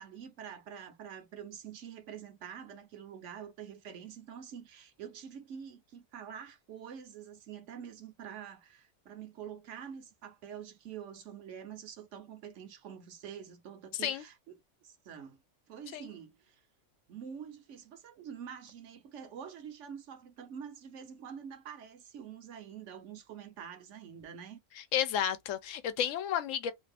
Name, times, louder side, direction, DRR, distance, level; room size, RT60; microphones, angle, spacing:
voice 1, 0.0-15.4 15.7-16.6 17.1-24.6, right 8 dB, 70° right, 1.0 m, -46 dB
voice 2, 24.9-26.7, left 9 dB, 80° left, 1.0 m, -32 dB
2.8 x 2.4 x 3.3 m
omnidirectional pair, 1.3 m